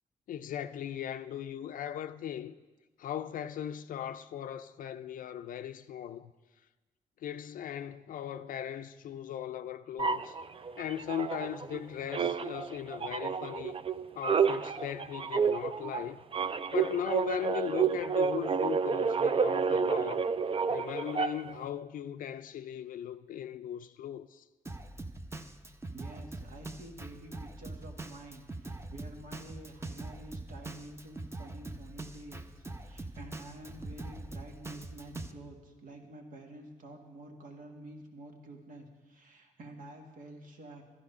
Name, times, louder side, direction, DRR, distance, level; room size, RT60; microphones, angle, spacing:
voice 1, 0.3-2.6 3.0-6.3 7.2-10.4 10.8-13.8 14.2-16.2 16.7-20.3 20.7-24.4, left 10 dB, 80° left, 0.4 m, -38 dB
sound 1, 10.0-11.8 12.1-21.6, right 6 dB, 40° right, 0.5 m, -30 dB
Drum kit, 24.6-35.3, right 2 dB, 20° right, 0.8 m, -43 dB
voice 2, 25.9-40.8, right 1 dB, 80° right, 1.6 m, -49 dB
12.0 x 11.0 x 5.4 m
cardioid pair, 60°, 14 cm